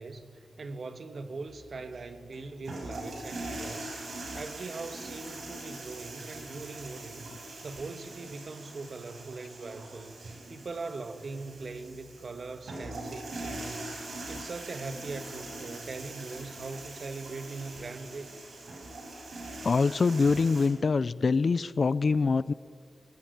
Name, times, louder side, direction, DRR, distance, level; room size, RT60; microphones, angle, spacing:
voice 1, 0.0-3.9 4.3-7.3 7.6-10.1 10.5-18.3, right 3 dB, 50° right, 9 dB, 1.7 m, -41 dB
sound 1, 1.5-20.7, right 2 dB, 70° right, 6.3 m, -42 dB
voice 2, 19.6-22.5, left 4 dB, 45° left, 18 dB, 0.5 m, -24 dB
22.0 x 19.0 x 9.4 m, 2.1 s
wide cardioid pair, 140°, 0 cm